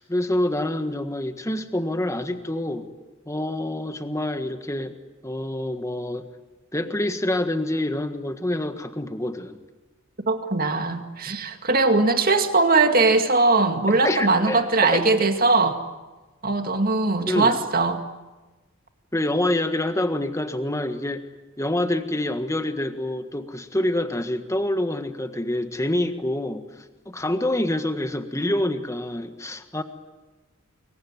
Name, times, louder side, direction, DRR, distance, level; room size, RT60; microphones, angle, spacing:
voice 1, 0.0-2.9 3.3-4.9 5.2-6.3 6.7-9.6 13.9-15.0 17.3-17.5 19.1-21.2 21.6-26.6 27.0-29.8, left 1 dB, 15° left, 8 dB, 1.6 m, -26 dB
voice 2, 10.3-15.8 16.4-18.0, right 3 dB, 45° right, 6 dB, 2.2 m, -20 dB
26.5 x 23.0 x 9.7 m, 1.2 s
head